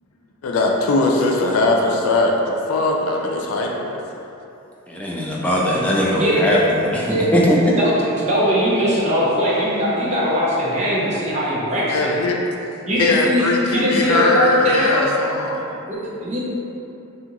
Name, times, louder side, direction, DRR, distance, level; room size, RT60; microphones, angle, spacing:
voice 1, 0.4-4.0 11.9-12.4 13.0-15.7, left 2 dB, 80° left, 0 dB, 0.4 m, -20 dB
voice 2, 4.9-7.8, equal, 5° left, -5 dB, 0.3 m, -19 dB
voice 3, 6.1-6.5 7.1-7.3 7.7-12.2 12.9-15.1 15.8-16.4, equal, 35° right, -7 dB, 0.6 m, -20 dB
2.7 x 2.7 x 2.5 m, 2.9 s
head